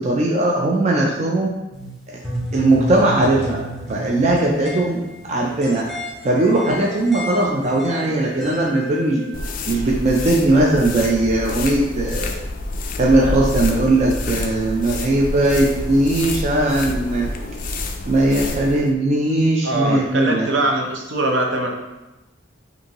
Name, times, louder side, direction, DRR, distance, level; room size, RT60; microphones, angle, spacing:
voice 1, 0.0-1.5 2.1-2.2 2.5-3.6 3.9-5.9 6.2-9.3 9.7-12.3 13.0-17.3 18.1-20.5, right 2 dB, 35° right, -2 dB, 0.4 m, -19 dB
sound 1, 1.7-9.9, equal, ahead, 0.9 m, -32 dB
sound 2, 9.3-18.9, left 2 dB, 45° left, 0.3 m, -28 dB
voice 2, 19.6-21.7, right 2 dB, 65° right, 1 dB, 0.7 m, -22 dB
5.2 x 2.6 x 2.9 m, 1.0 s
head